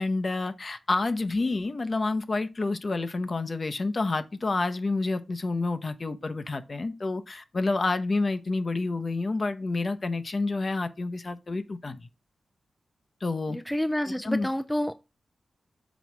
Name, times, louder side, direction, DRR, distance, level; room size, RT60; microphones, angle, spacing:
voice 1, 0.0-12.1 13.2-13.6 14.1-14.5, left 3 dB, 40° left, 0.8 m, -29 dB
voice 2, 13.5-14.9, left 1 dB, 5° left, 0.4 m, -28 dB
6.2 x 4.1 x 6.0 m
wide cardioid pair, 110°, 0 cm